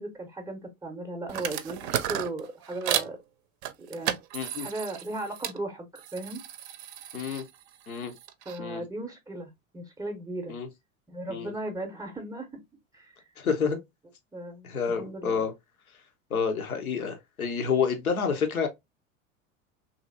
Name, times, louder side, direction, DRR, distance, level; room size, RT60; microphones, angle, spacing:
voice 1, 0.0-3.2 3.9-4.2 4.6-6.4 8.5-10.6 11.1-12.5 12.9-13.2 14.3-15.4, right 2 dB, 5° right, 0.6 m, -36 dB
sound 1, 1.3-3.1 3.6-5.6 5.9-8.6, right 11 dB, 50° right, 0.5 m, -34 dB
voice 2, 4.3-4.7 7.1-7.4 7.9-8.1 8.6-8.8 10.5-10.7 11.3-11.5 13.4-13.8 14.6-15.5 16.3-18.7, left 6 dB, 85° left, 0.7 m, -28 dB
3.0 x 2.6 x 2.4 m
figure-of-eight pair, 80°, 42 cm